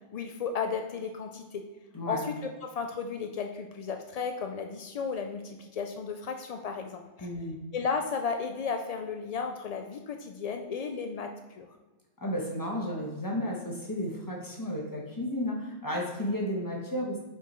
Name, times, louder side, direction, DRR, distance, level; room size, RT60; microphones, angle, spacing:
voice 1, 0.1-1.6 2.0-7.3 7.7-11.7, left 5 dB, 70° left, 5 dB, 0.3 m, -34 dB
voice 2, 7.2-7.6 12.2-17.2, equal, 20° left, -2 dB, 1.1 m, -33 dB
5.2 x 4.9 x 4.4 m, 1.2 s
omnidirectional pair, 1.2 m